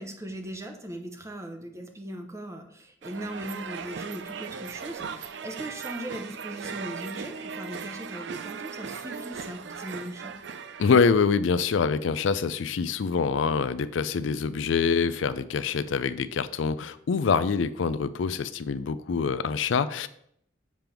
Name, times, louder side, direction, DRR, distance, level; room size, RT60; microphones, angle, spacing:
voice 1, 0.0-10.4, right 1 dB, 15° right, 4 dB, 0.8 m, -39 dB
sound 1, 3.0-11.1, right 6 dB, 65° right, 0.4 m, -38 dB
voice 2, 10.8-20.1, left 5 dB, 80° left, 14 dB, 0.4 m, -25 dB
7.4 x 3.5 x 5.9 m, 0.70 s
head